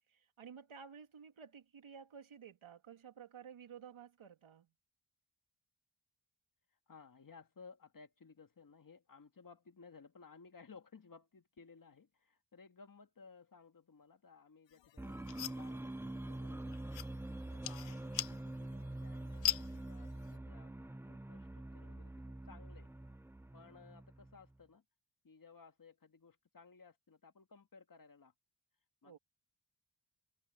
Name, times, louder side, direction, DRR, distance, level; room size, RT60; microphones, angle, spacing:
voice 1, 0.1-4.7 29.0-29.2, right 7 dB, 80° right, 2.6 m, -54 dB
voice 2, 6.9-17.0 17.5-22.1 22.5-22.9 23.5-24.8 25.2-28.3 29.0-29.2, left 5 dB, 45° left, 2.0 m, -59 dB
sound 1, 14.7-20.4, left 12 dB, 65° left, 0.6 m, -43 dB
sound 2, 15.0-24.6, right 1 dB, 5° right, 0.4 m, -45 dB
wide cardioid pair, 100°, 48 cm